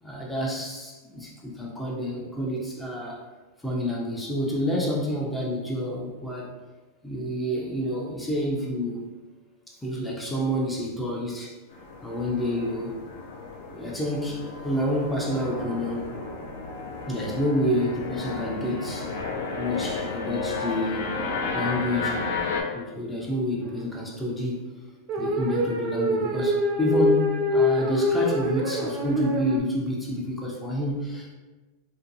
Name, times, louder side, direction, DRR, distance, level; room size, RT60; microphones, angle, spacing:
voice 1, 0.0-3.2 3.6-6.5 7.0-9.1 9.7-11.5 12.0-13.0 13.7-16.2 17.1-19.1 19.6-21.2 21.5-22.2 22.7-24.7 25.2-31.3, left 1 dB, 5° left, -3 dB, 0.4 m, -28 dB
sound 1, 11.7-22.6, left 4 dB, 80° left, 0.4 m, -33 dB
sound 2, 23.6-24.0 25.1-29.6, left 1 dB, 45° right, 0.5 m, -25 dB
2.6 x 2.2 x 2.6 m, 1.2 s
supercardioid pair, 135°, 0 cm